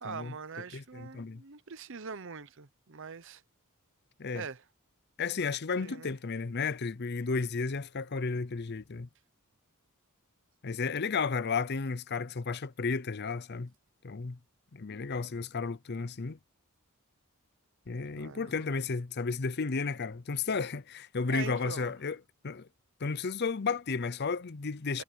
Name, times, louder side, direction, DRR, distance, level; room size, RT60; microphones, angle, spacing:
voice 1, 0.0-3.4 4.3-4.6 5.8-6.1 18.1-18.8 21.3-21.9 24.9-25.0, right 5 dB, 60° right, 0.9 m, -43 dB
voice 2, 0.7-1.4 4.2-4.5 5.2-9.1 10.6-13.7 14.0-14.4 14.7-16.4 17.9-22.2 22.4-22.7 23.0-25.0, left 4 dB, 50° left, 0.6 m, -33 dB
head